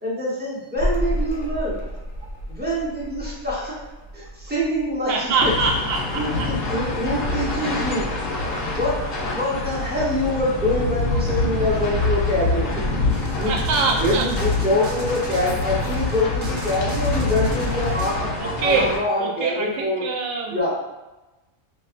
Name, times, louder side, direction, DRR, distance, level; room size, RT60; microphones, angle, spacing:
voice 1, 0.0-1.7 2.5-3.8 4.1-5.5 6.2-8.1 8.7-9.0 9.3-13.6 13.8-20.0 20.5-20.7, left 1 dB, 10° right, -8 dB, 0.8 m, -25 dB
sound 1, 0.7-10.1, equal, 55° left, 0.7 m, -33 dB
voice 2, 5.1-6.5 13.4-14.3 18.4-18.9 19.2-20.6, right 4 dB, 65° right, 0 dB, 0.6 m, -24 dB
sound 2, 5.4-19.0, left 2 dB, 80° left, 1.1 m, -25 dB
sound 3, 13.1-18.1, right 3 dB, 80° right, 1.0 m, -41 dB
5.3 x 2.0 x 2.5 m, 1.1 s
omnidirectional pair, 1.4 m